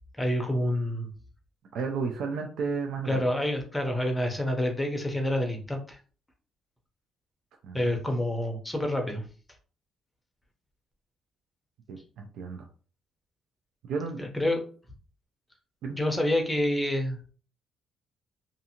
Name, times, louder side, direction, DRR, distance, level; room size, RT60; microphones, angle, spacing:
voice 1, 0.2-1.1 3.1-6.0 7.7-9.2 14.2-14.6 15.9-17.2, left 1 dB, 10° left, 3 dB, 0.6 m, -28 dB
voice 2, 1.7-3.3 7.6-7.9 11.9-12.7 13.8-14.2 15.8-16.0, right 5 dB, 75° right, 3 dB, 0.4 m, -33 dB
2.6 x 2.4 x 2.8 m, 0.40 s
cardioid pair, 120°, 0 cm